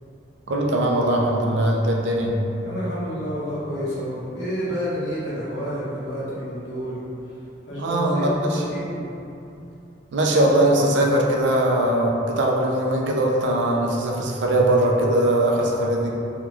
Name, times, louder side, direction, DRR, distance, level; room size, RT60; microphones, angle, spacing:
voice 1, 0.5-2.4 7.8-8.6 10.1-16.1, right 1 dB, 75° right, -1 dB, 0.4 m, -20 dB
voice 2, 2.6-7.0 7.7-9.1, equal, 75° left, -9 dB, 1.1 m, -29 dB
3.6 x 2.3 x 2.9 m, 2.7 s
head